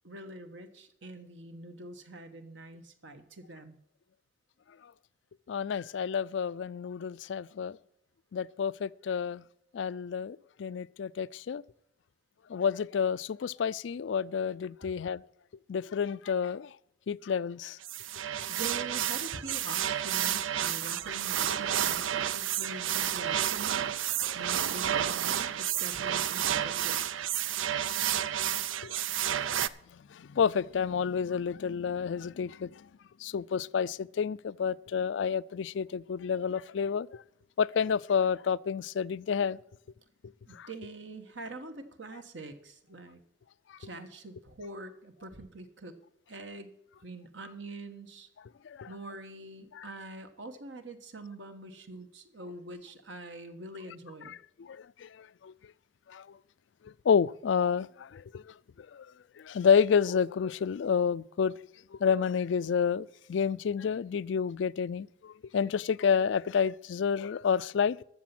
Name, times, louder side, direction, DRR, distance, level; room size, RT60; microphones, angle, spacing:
voice 1, 0.0-3.8 18.5-22.0 22.3-23.9 24.3-27.0 40.5-43.2 43.8-45.9 46.3-46.7 47.0-48.3 48.9-54.3, right 2 dB, 70° right, 1.4 m, -44 dB
voice 2, 5.5-7.8 8.3-9.4 9.7-11.6 12.5-15.2 15.7-16.7 17.1-17.8 24.3-24.4 28.8-29.0 29.9-32.9 33.2-37.2 37.6-39.6 40.5-40.7 48.6-48.9 49.7-49.9 54.3-55.5 56.1-56.3 56.8-59.1 59.4-68.0, left 6 dB, 70° left, 0.4 m, -30 dB
sound 1, 17.8-29.7, right 10 dB, 85° right, 0.5 m, -31 dB
13.5 x 7.0 x 5.9 m
head